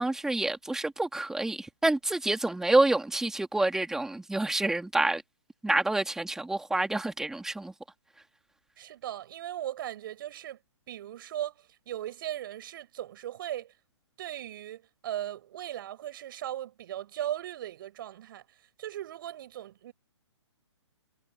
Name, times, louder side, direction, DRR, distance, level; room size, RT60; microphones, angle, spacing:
voice 1, 0.0-5.2 5.6-7.7, right 2 dB, 5° right, 3.0 m, -27 dB
voice 2, 8.8-10.6 10.9-13.7 14.2-18.4 18.8-19.9, right 12 dB, 45° right, 7.9 m, -38 dB
figure-of-eight pair, 130°, 15 cm